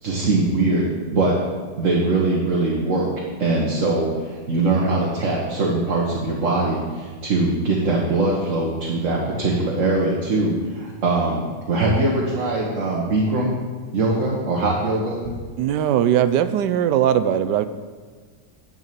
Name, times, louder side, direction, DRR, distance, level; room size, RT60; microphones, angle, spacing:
voice 1, 0.0-1.4 1.8-3.1 3.4-13.6 13.9-15.3, right 2 dB, 50° right, -3 dB, 1.6 m, -22 dB
voice 2, 15.6-17.7, right 10 dB, 80° right, 12 dB, 1.2 m, -19 dB
10.5 x 5.6 x 7.5 m, 1.5 s
omnidirectional pair, 1.9 m